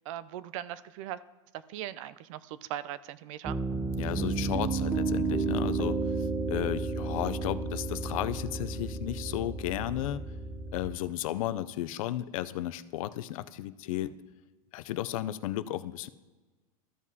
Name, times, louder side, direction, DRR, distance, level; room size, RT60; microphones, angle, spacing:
voice 1, 0.1-1.2 1.7-3.6, right 12 dB, 65° right, 16 dB, 0.5 m, -39 dB
Piano, 3.4-10.9, right 3 dB, 15° right, 0.6 m, -32 dB
voice 2, 4.0-10.2 10.7-14.1 14.7-16.1, left 13 dB, 70° left, 15 dB, 0.5 m, -34 dB
14.0 x 7.3 x 2.8 m, 1.3 s
supercardioid pair, 130°, 18 cm